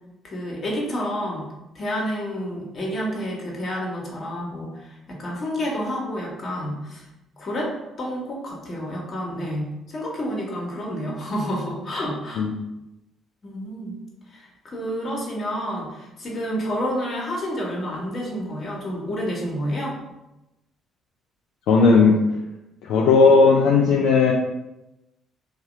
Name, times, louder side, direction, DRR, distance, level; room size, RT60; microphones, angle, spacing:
voice 1, 0.2-1.5 1.7-7.1 7.4-7.7 8.0-12.5 13.4-14.0 14.3-20.0, equal, 50° left, -2 dB, 1.5 m, -29 dB
voice 2, 21.7-22.2 22.8-24.3, left 4 dB, 75° left, -1 dB, 0.4 m, -15 dB
3.2 x 2.9 x 4.7 m, 0.96 s
hypercardioid pair, 55°, 0 cm